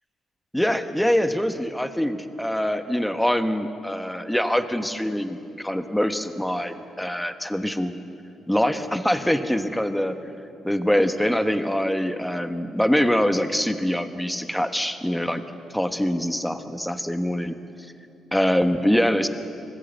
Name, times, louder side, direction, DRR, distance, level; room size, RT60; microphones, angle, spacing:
voice 1, 0.5-8.0 8.5-10.2 10.6-15.4 15.7-17.6 18.3-19.3, equal, 5° left, 8 dB, 1.2 m, -24 dB
25.0 x 19.5 x 8.0 m, 2.7 s
cardioid pair, 125°, 0 cm